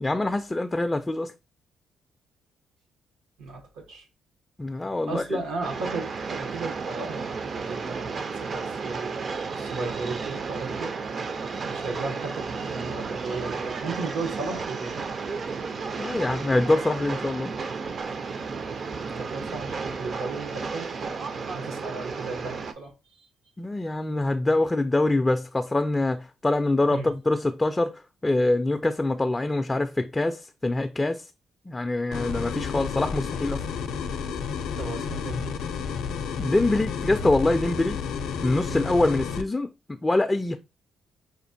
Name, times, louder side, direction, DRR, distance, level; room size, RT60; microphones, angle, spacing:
voice 1, 0.0-1.3 4.6-5.2 16.0-17.5 23.6-31.3 31.7-33.6 36.4-38.0 38.4-40.6, left 2 dB, 15° left, 0.3 m, -24 dB
voice 2, 3.4-4.0 5.1-8.1 8.3-11.2 11.6-15.1 19.1-22.9 26.9-27.1 34.8-35.6 38.7-38.9, right 3 dB, 85° right, 1.1 m, -35 dB
Train, 5.6-22.7, right 4 dB, 45° right, 0.4 m, -33 dB
sound 1, 32.1-39.4, left 6 dB, 85° left, 0.4 m, -31 dB
5.0 x 2.4 x 2.6 m
cardioid pair, 90°, 0 cm